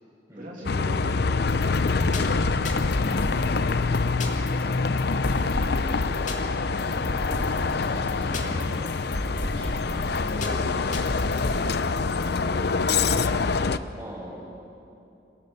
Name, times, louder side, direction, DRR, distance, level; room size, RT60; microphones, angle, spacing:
voice 1, 0.3-1.2 1.5-2.0 4.3-4.8 5.6-6.4 7.3-8.7 9.4-12.0, equal, 50° right, -4 dB, 2.9 m, -42 dB
Bus, 0.6-13.8, left 4 dB, 65° left, 0.6 m, -25 dB
sound 1, 1.5-12.4, left 1 dB, 45° left, 2.4 m, -35 dB
sound 2, 3.0-3.1 3.3-9.1, left 1 dB, 25° left, 2.5 m, -43 dB
voice 2, 13.9-14.4, right 1 dB, 15° right, -3 dB, 6.0 m, -42 dB
27.0 x 17.5 x 7.0 m, 2.8 s
head